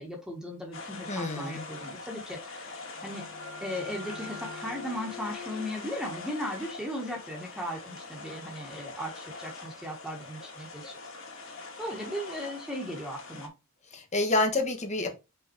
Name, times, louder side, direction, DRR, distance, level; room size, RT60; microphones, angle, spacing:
voice 1, 0.0-3.2 3.6-11.1 11.5-13.5, equal, 5° right, 0 dB, 1.4 m, -37 dB
sound 1, 0.7-13.5, left 3 dB, 60° left, 2.3 m, -43 dB
voice 2, 1.1-1.7 13.9-15.1, left 2 dB, 30° left, 5 dB, 1.2 m, -28 dB
sound 2, 2.6-8.1, left 4 dB, 80° right, 2.6 m, -47 dB
5.5 x 4.1 x 4.4 m, 0.26 s
head